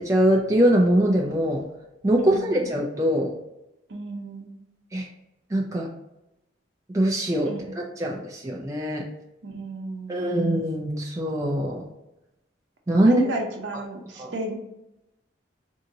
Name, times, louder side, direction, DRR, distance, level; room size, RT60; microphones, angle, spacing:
voice 1, 0.0-1.6 2.0-3.3 4.9-5.1 5.5-5.9 6.9-9.0 10.1-11.8 12.9-13.2 14.2-14.3, right 1 dB, 15° right, -1 dB, 0.4 m, -22 dB
voice 2, 2.2-2.7 3.9-4.5 7.5-7.8 9.4-10.4 13.0-14.5, right 1 dB, 70° right, 2 dB, 0.8 m, -32 dB
3.8 x 2.7 x 2.6 m, 0.92 s
head